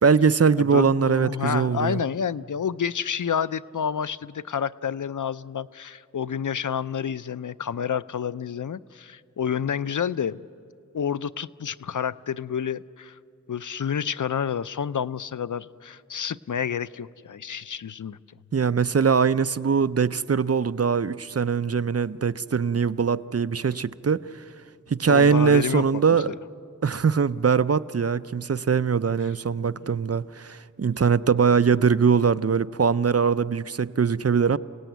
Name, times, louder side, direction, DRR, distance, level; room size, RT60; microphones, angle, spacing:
voice 1, 0.0-2.0 18.5-24.2 24.9-26.3 26.8-34.6, right 6 dB, 55° right, 0.5 m, -22 dB
voice 2, 0.6-10.4 10.9-13.2 13.5-18.2 25.1-25.8 26.1-26.2, left 7 dB, 90° left, 0.5 m, -29 dB
28.0 x 18.0 x 9.2 m
wide cardioid pair, 45°, 30 cm